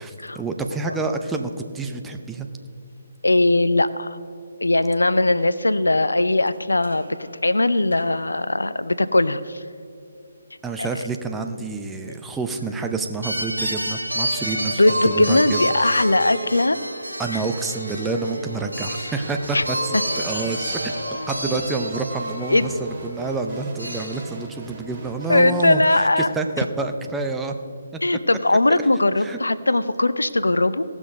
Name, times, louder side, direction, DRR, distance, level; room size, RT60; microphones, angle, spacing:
voice 1, 0.0-2.5 10.6-16.0 17.2-20.9 21.3-27.5 29.2-29.4, right 3 dB, 10° right, 4 dB, 0.6 m, -28 dB
voice 2, 3.2-4.2 4.6-9.6 10.8-10.9 12.0-12.1 14.7-16.8 17.3-17.4 19.0-19.1 19.5-19.6 22.5-22.7 25.3-26.3 28.0-30.8, left 2 dB, 75° left, 14 dB, 0.4 m, -20 dB
sound 1, 6.5-6.6 6.8-7.2 7.9-8.0 13.2-24.2, equal, 85° right, 1.6 m, -29 dB
sound 2, 19.2-26.1, right 1 dB, 35° right, 2.1 m, -40 dB
17.0 x 6.1 x 5.2 m, 2.6 s
figure-of-eight pair, 140°, 0 cm